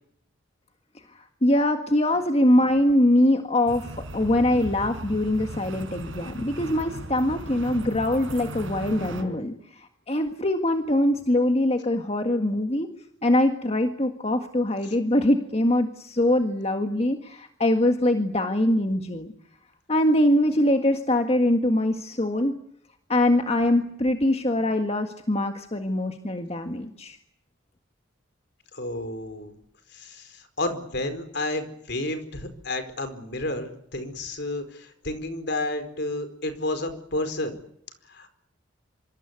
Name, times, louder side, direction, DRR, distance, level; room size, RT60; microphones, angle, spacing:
voice 1, 1.1-12.9 13.2-19.3 19.9-22.6 23.1-27.2, left 1 dB, 30° left, 5 dB, 1.7 m, -23 dB
sound 1, 3.7-9.2, right 1 dB, 75° right, 4.4 m, -37 dB
voice 2, 28.7-29.5 29.9-37.5 38.1-38.3, left 2 dB, 55° left, 9 dB, 4.6 m, -31 dB
25.5 x 25.5 x 8.3 m, 0.72 s
head